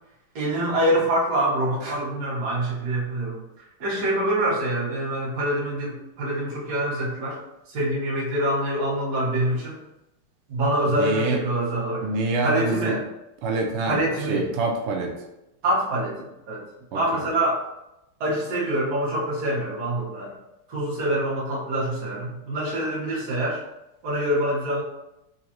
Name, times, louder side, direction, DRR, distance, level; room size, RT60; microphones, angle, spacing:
voice 1, 0.3-3.4 3.8-7.4 7.7-9.8 10.5-12.1 12.4-13.0 13.8-14.5 15.6-16.6 16.9-17.7 18.2-20.4 20.7-23.6 24.0-24.8, right 1 dB, 50° right, -7 dB, 1.7 m, -25 dB
voice 2, 10.9-11.4 12.0-12.9 13.4-14.0 14.3-15.1 16.9-17.2, right 3 dB, 80° right, 1 dB, 1.7 m, -26 dB
4.1 x 3.8 x 2.9 m, 0.90 s
omnidirectional pair, 2.4 m